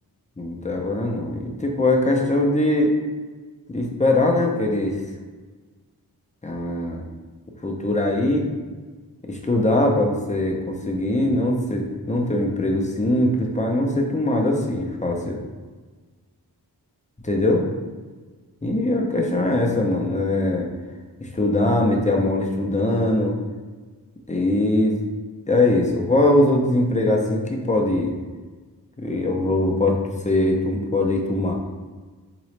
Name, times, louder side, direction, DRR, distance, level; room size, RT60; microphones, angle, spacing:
voice 1, 0.4-2.9 3.7-5.0 6.4-7.0 7.6-8.5 9.2-15.4 17.2-17.6 18.6-20.7 21.2-23.4 24.3-24.9 25.5-28.1 29.0-31.5, left 1 dB, 20° left, 0 dB, 0.5 m, -21 dB
3.7 x 3.0 x 3.2 m, 1.4 s
wide cardioid pair, 85°, 40 cm